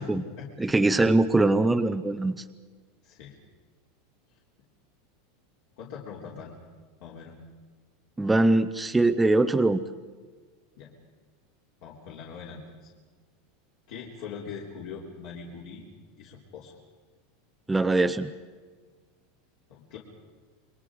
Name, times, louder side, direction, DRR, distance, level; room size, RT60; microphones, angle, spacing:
voice 1, 0.0-0.8 3.0-3.4 5.8-6.5 7.0-7.3 10.8-10.9 11.8-12.9 13.9-15.8 16.2-16.7 19.7-20.0, left 6 dB, 60° left, -4 dB, 3.7 m, -42 dB
voice 2, 0.6-2.4 8.2-9.8 17.7-18.3, right 2 dB, 5° right, 7 dB, 0.6 m, -22 dB
28.5 x 22.5 x 5.0 m, 1.5 s
supercardioid pair, 155°, 0 cm